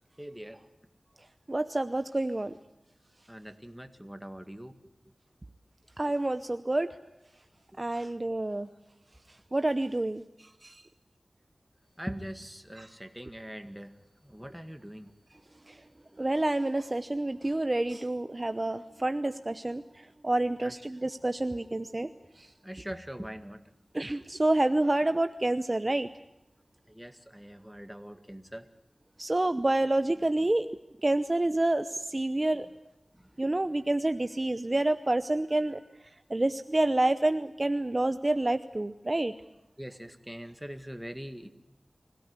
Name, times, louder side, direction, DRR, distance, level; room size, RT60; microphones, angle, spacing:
voice 1, 0.2-0.7 1.2-1.3 3.3-4.9 7.7-8.1 12.0-14.0 14.2-15.1 20.6-20.7 22.6-23.6 26.9-28.7 33.1-33.3 39.8-41.5, equal, 5° right, 8 dB, 2.0 m, -42 dB
voice 2, 1.5-2.5 6.0-7.0 7.8-8.7 9.5-10.8 12.8-12.9 15.7-15.8 16.2-22.5 23.9-26.1 29.2-30.7 31.0-32.7 33.4-35.8 36.3-39.3, right 2 dB, 35° right, 11 dB, 0.8 m, -28 dB
25.5 x 17.0 x 9.7 m, 0.87 s
wide cardioid pair, 60°, 0 cm